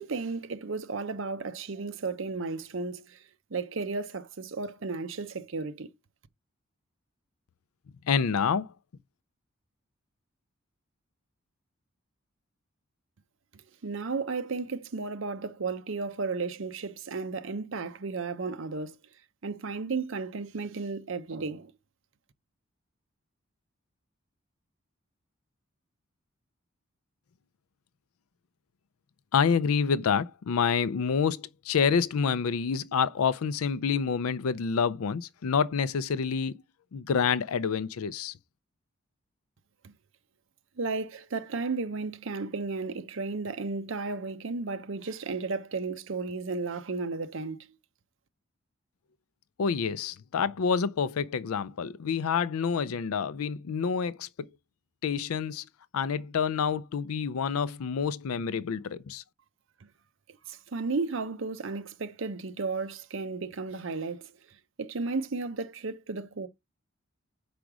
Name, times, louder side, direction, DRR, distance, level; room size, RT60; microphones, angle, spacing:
voice 1, 0.0-3.2 3.5-5.9 13.8-19.0 19.4-21.7 39.8-39.9 40.8-47.7 60.5-64.3 64.8-66.5, right 4 dB, 65° right, 0.7 m, -34 dB
voice 2, 8.1-8.7 29.3-36.5 36.9-38.3 49.6-54.5 55.0-55.7 55.9-59.2, left 6 dB, 90° left, 0.4 m, -28 dB
5.1 x 4.8 x 6.0 m
head